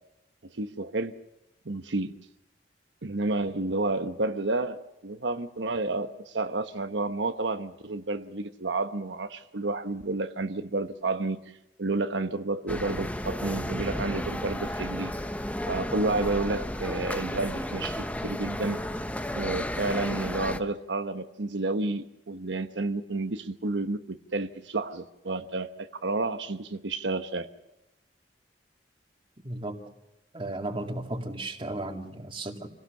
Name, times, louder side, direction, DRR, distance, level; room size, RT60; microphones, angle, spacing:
voice 1, 0.5-1.1 1.6-2.2 3.0-11.4 11.8-15.1 15.7-18.8 19.3-27.5, right 2 dB, 90° right, 8 dB, 1.1 m, -30 dB
sound 1, 12.7-20.6, left 1 dB, 10° left, 0.9 m, -33 dB
voice 2, 29.4-29.8 30.3-32.7, right 2 dB, 30° right, 4 dB, 2.2 m, -34 dB
27.5 x 18.0 x 6.6 m, 0.93 s
head